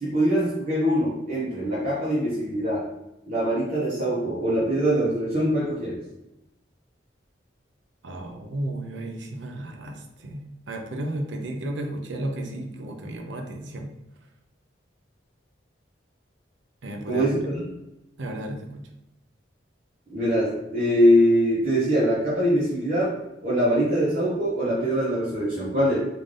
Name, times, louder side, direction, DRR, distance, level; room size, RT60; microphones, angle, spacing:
voice 1, 0.0-2.8 3.3-6.0 17.1-17.6 20.1-23.1 23.4-26.0, equal, 45° right, -9 dB, 0.9 m, -23 dB
voice 2, 8.0-13.9 16.8-17.4 18.2-18.8, right 1 dB, 75° right, 3 dB, 0.5 m, -33 dB
3.3 x 2.6 x 3.6 m, 0.93 s
head